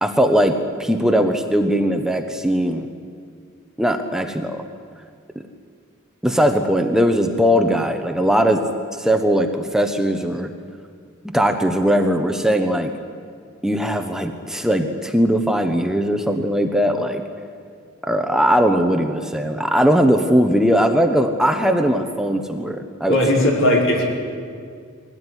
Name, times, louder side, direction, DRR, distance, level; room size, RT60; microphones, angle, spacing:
voice 1, 0.0-2.9 3.8-4.6 6.2-8.6 9.0-10.5 11.3-12.9 13.6-17.2 18.1-23.2, equal, 5° right, 5 dB, 1.1 m, -19 dB
voice 2, 23.1-24.0, left 1 dB, 65° left, -1 dB, 5.4 m, -17 dB
22.0 x 17.5 x 9.9 m, 2.1 s
head